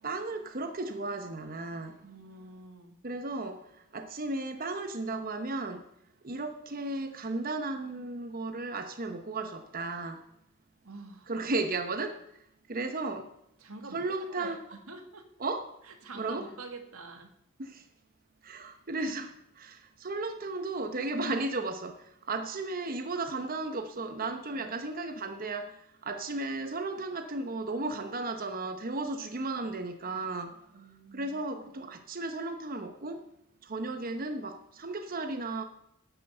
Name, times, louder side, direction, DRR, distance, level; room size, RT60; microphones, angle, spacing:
voice 1, 0.0-2.1 3.0-5.9 6.2-10.3 11.3-12.4 12.7-13.3 13.9-14.6 15.4-15.8 16.1-16.5 17.6-17.9 18.4-33.3 33.6-35.6, right 2 dB, 40° right, 0.9 m, -35 dB
voice 2, 2.0-3.0 10.8-11.3 13.6-15.3 15.8-17.3 24.5-24.7 30.1-30.2 30.7-31.4, right 3 dB, 90° right, 1.9 m, -47 dB
10.5 x 9.2 x 6.7 m
head